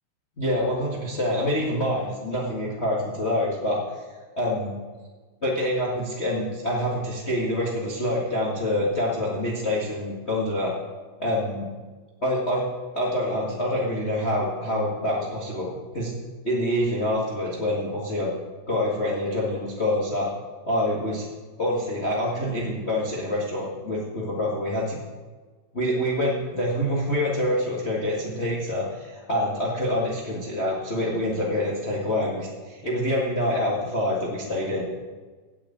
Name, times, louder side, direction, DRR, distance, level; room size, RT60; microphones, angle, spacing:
voice 1, 0.4-3.8 4.4-4.7 5.4-10.7 11.2-11.7 12.2-12.6 12.9-16.1 16.4-18.3 18.7-20.3 20.6-21.2 21.6-25.0 25.7-34.8, left 1 dB, 85° left, -5 dB, 0.5 m, -26 dB
8.5 x 8.3 x 8.6 m, 1.3 s
omnidirectional pair, 4.7 m